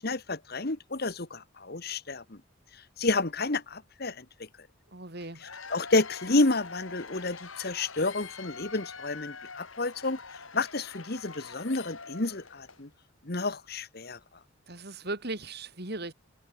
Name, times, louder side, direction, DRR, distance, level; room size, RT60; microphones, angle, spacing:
voice 1, 0.0-2.4 2.7-4.2 5.4-10.2 10.5-12.9 13.2-14.2, left 2 dB, 50° left, 1.5 m, -30 dB
voice 2, 4.9-5.4 14.7-16.1, right 2 dB, 50° right, 3.8 m, -37 dB
Cheering / Applause / Crowd, 5.2-12.9, left 5 dB, 75° left, 6.3 m, -45 dB
head